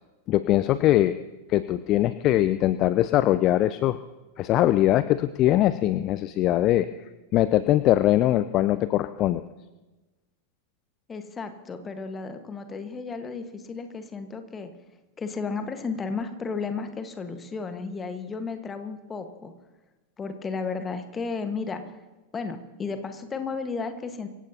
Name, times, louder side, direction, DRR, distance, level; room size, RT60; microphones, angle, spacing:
voice 1, 0.3-1.2 1.5-4.0 4.4-6.9 7.3-9.4, left 14 dB, 35° left, 14 dB, 0.4 m, -21 dB
voice 2, 11.1-14.7 15.2-19.5 20.2-21.8 22.3-24.3, left 4 dB, 20° left, 8 dB, 1.4 m, -33 dB
25.0 x 15.5 x 2.8 m, 1.1 s
figure-of-eight pair, 90°, 0 cm